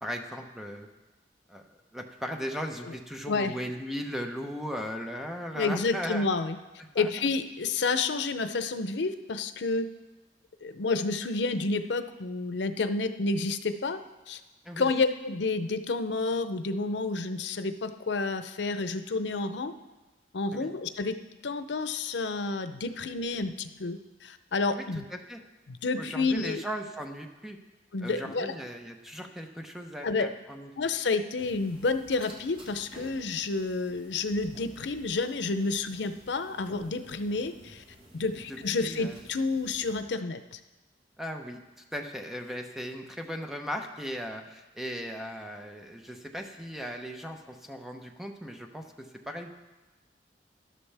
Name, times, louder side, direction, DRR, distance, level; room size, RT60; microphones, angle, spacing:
voice 1, 0.0-0.9 1.5-1.6 1.9-6.3 7.0-7.1 14.6-14.9 20.5-20.7 24.7-24.9 25.1-25.4 26.0-27.6 28.0-30.7 38.3-39.2 41.2-41.6 41.9-49.6, equal, ahead, 3 dB, 0.8 m, -37 dB
voice 2, 5.5-6.6 6.9-9.9 10.6-14.0 14.3-14.4 14.8-19.7 20.3-21.2 21.4-25.1 25.7-26.6 27.9-28.5 30.0-30.3 30.8-37.8 38.1-40.6, left 3 dB, 90° left, 10 dB, 0.6 m, -30 dB
sound 1, 31.4-40.0, equal, 30° right, 1.7 m, -52 dB
13.0 x 11.5 x 3.4 m, 1.1 s
head